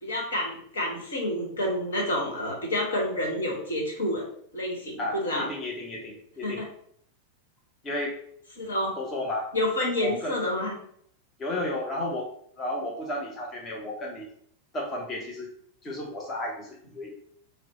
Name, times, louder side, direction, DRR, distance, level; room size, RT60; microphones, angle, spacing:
voice 1, 0.0-4.2 4.5-5.5 6.4-6.7 8.6-9.0 9.5-10.7, left 1 dB, 70° left, -1 dB, 1.2 m, -29 dB
voice 2, 5.0-6.6 7.8-8.2 9.0-9.5 10.0-10.3 11.4-12.3 12.6-14.3 14.7-15.5 15.8-17.1, left 1 dB, 25° left, 0 dB, 0.7 m, -33 dB
4.3 x 2.1 x 4.0 m, 0.66 s
figure-of-eight pair, 90°, 0 cm